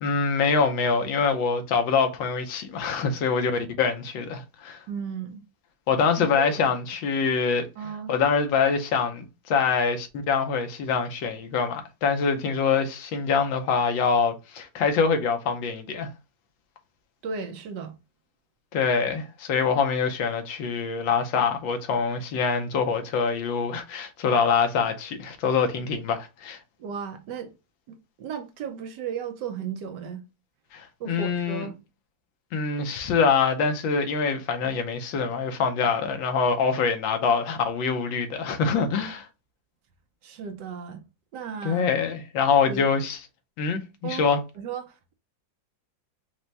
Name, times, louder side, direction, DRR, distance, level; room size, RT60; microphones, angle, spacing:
voice 1, 0.0-4.8 5.9-7.7 8.1-16.1 18.7-26.6 30.7-31.7 32.5-39.3 41.6-43.2 43.6-44.4, left 5 dB, 85° left, 1.6 m, -25 dB
voice 2, 4.9-5.4 6.2-6.7 7.8-8.1 17.2-18.0 26.8-27.5 27.9-30.2 31.0-31.8 40.2-41.0 41.3-41.9 42.7-42.8 44.0-44.3 44.6-45.1, right 7 dB, 75° right, 1.2 m, -35 dB
4.7 x 2.2 x 3.9 m
omnidirectional pair, 2.0 m